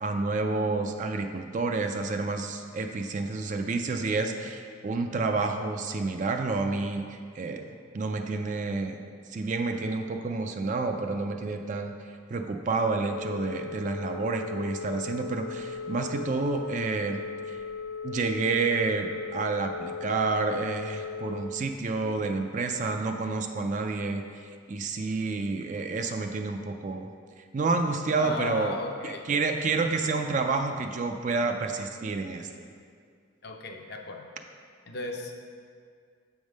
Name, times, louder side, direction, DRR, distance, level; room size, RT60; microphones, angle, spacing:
voice 1, 0.0-9.0 9.3-17.6 18.0-24.2 24.7-27.1 27.4-28.7 29.0-32.7, right 3 dB, 35° right, 5 dB, 0.3 m, -29 dB
Telephone, 13.1-21.4, left 5 dB, 85° left, 1.0 m, -37 dB
voice 2, 28.2-29.2 33.4-34.3 34.9-35.5, left 3 dB, 50° left, 2 dB, 0.6 m, -36 dB
7.0 x 3.6 x 6.3 m, 2.2 s
head